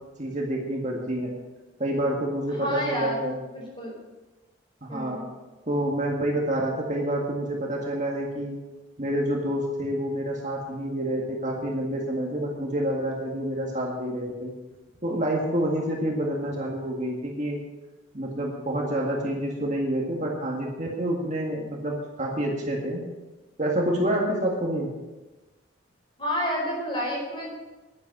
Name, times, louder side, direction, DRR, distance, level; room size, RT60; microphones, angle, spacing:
voice 1, 0.2-1.3 1.8-3.4 4.8-5.2 5.7-8.6 9.0-14.5 15.0-17.6 18.1-23.0 23.6-24.9, right 1 dB, 35° right, -1 dB, 1.9 m, -28 dB
voice 2, 2.5-3.2 3.5-3.9 4.9-5.3 26.2-27.5, equal, 25° left, -2 dB, 4.8 m, -30 dB
10.5 x 10.0 x 6.5 m, 1.2 s
head